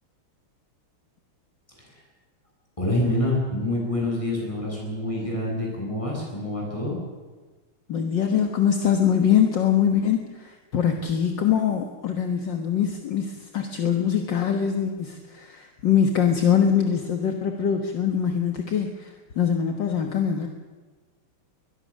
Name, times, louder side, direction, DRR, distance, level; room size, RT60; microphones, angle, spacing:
voice 1, 1.7-2.1 2.8-7.0, left 1 dB, 15° left, -2 dB, 8.2 m, -27 dB
voice 2, 7.9-20.5, left 8 dB, 60° left, 4 dB, 2.0 m, -23 dB
22.0 x 21.5 x 6.5 m, 1.3 s
omnidirectional pair, 2.3 m